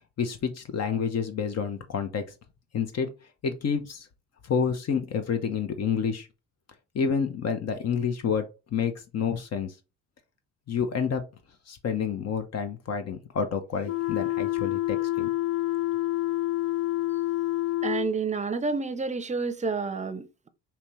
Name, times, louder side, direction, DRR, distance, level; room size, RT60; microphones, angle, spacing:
voice 1, 0.2-2.2 2.7-3.1 3.4-4.1 4.4-6.3 6.9-9.7 10.7-11.2 11.7-15.3, left 6 dB, 55° left, 0.9 m, -29 dB
sound 1, 13.8-18.1, left 17 dB, 75° left, 0.5 m, -28 dB
voice 2, 17.8-20.5, right 4 dB, 25° right, 0.6 m, -29 dB
5.1 x 2.9 x 3.1 m
cardioid pair, 90°, 30 cm